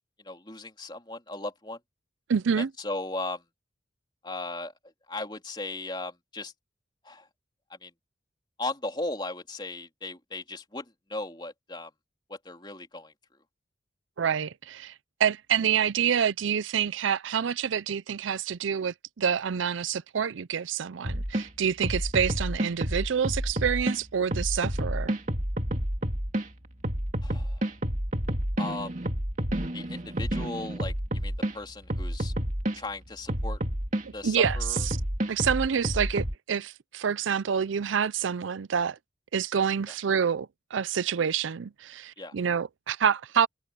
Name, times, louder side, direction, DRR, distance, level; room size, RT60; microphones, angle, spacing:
voice 1, 0.2-1.8 2.6-3.4 4.2-4.7 5.1-6.5 7.0-7.3 7.8-7.9 8.6-11.9 12.3-13.1 27.2-27.6 28.6-28.9 29.7-32.3 32.8-33.6 34.1-34.8 42.2-42.3, left 2 dB, 25° left, 3.6 m, -37 dB
voice 2, 2.3-2.7 14.2-14.9 15.2-25.2 34.0-35.0 35.3-39.0 39.3-43.5, right 7 dB, 85° right, 0.5 m, -27 dB
sound 1, 21.0-21.4 21.8-24.0 24.3-26.4 26.8-31.5 31.9-32.8 33.3-34.0 34.4-36.3, right 1 dB, 40° right, 2.4 m, -29 dB
head